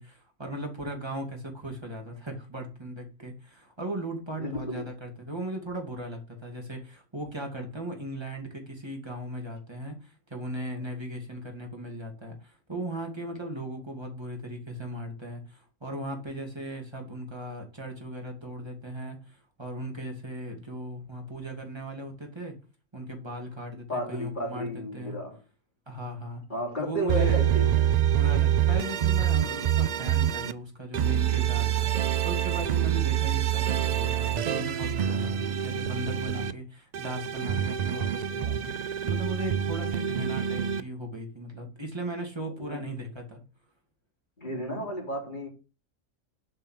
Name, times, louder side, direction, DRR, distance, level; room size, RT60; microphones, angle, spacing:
voice 1, 0.0-22.5 22.9-25.2 25.9-26.4 26.8-27.4 28.1-38.7 39.0-43.4, right 1 dB, 20° right, 2.6 m, -37 dB
voice 2, 4.4-4.9 23.9-25.4 26.5-27.8 42.6-42.9 44.4-45.5, equal, 35° left, 3.9 m, -33 dB
sound 1, 27.1-30.5 30.9-36.5 36.9-40.8, right 10 dB, 75° right, 0.4 m, -26 dB
8.0 x 5.5 x 6.6 m
omnidirectional pair, 1.4 m